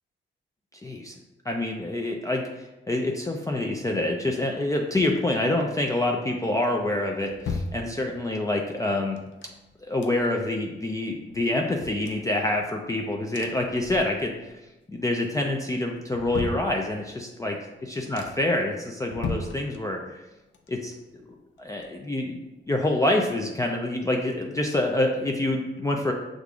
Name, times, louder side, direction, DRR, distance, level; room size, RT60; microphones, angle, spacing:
voice 1, 0.8-1.1 1.5-2.4 2.9-9.2 9.8-14.3 14.9-17.6 17.9-20.0 20.7-21.0 21.6-22.4 22.7-26.1, left 1 dB, 15° left, 1 dB, 0.4 m, -26 dB
sound 1, 6.7-8.4 9.2-10.6 10.9-11.0 11.3-12.9 13.3-14.5 14.8-15.3 15.8-17.2 17.7-17.8 18.1-18.6 19.0-20.2 20.5-22.4 22.7-22.8, left 4 dB, 70° left, 0.5 m, -38 dB
6.4 x 2.5 x 2.3 m, 1.0 s
cardioid pair, 80°, 20 cm